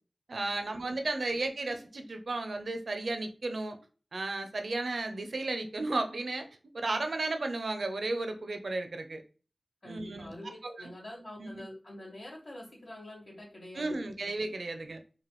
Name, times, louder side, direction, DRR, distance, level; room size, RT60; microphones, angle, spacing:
voice 1, 0.3-3.8 4.1-6.5 6.7-9.2 9.8-10.3 10.8-10.9 11.4-11.5 13.7-15.0, right 2 dB, 85° right, 0.5 m, -34 dB
voice 2, 9.8-14.3, left 1 dB, 75° left, 2.1 m, -46 dB
4.9 x 2.3 x 3.0 m
wide cardioid pair, 50°, 0 cm